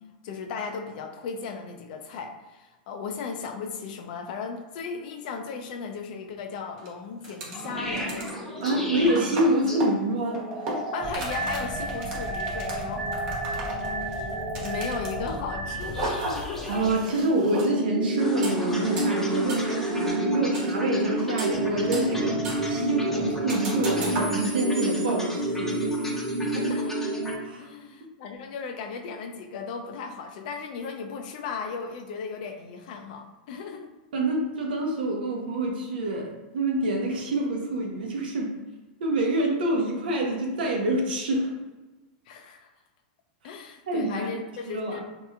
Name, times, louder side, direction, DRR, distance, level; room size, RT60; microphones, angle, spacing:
voice 1, 0.0-8.3 10.9-13.1 14.0-16.9 26.4-27.0 27.6-33.9 42.3-42.7 43.4-45.0, left 5 dB, 60° left, 5 dB, 0.5 m, -36 dB
sound 1, 6.8-6.9 7.2-7.6 8.0-15.3 15.8-17.7 18.4-18.5 19.0-19.1 19.5-19.6 20.5-20.9 21.2-22.2 22.4-22.8 23.5-24.3, right 2 dB, 55° right, 1.1 m, -35 dB
sound 2, 7.5-27.4, right 1 dB, 5° left, 0.7 m, -29 dB
voice 2, 8.6-10.7 16.7-22.4 22.6-25.9 27.4-27.7 34.1-38.5 39.0-41.5 43.9-44.3 44.7-45.0, right 1 dB, 80° right, 1 dB, 0.8 m, -27 dB
3.2 x 3.0 x 2.3 m, 1.2 s
hypercardioid pair, 130°, 5 cm